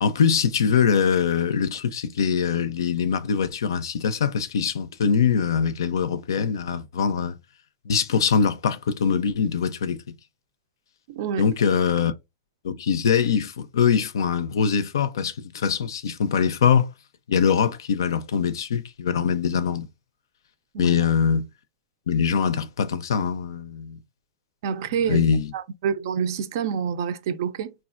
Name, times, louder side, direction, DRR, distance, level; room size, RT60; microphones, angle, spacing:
voice 1, 0.0-7.3 7.9-10.0 11.4-12.1 12.6-16.9 17.3-19.9 20.8-21.5 22.1-24.0 25.1-25.5, left 7 dB, 85° left, 0.4 m, -23 dB
voice 2, 11.1-11.5 20.7-21.0 24.6-25.2 25.5-27.7, right 7 dB, 65° right, 0.4 m, -27 dB
3.3 x 2.4 x 2.5 m
hypercardioid pair, 120°, 2 cm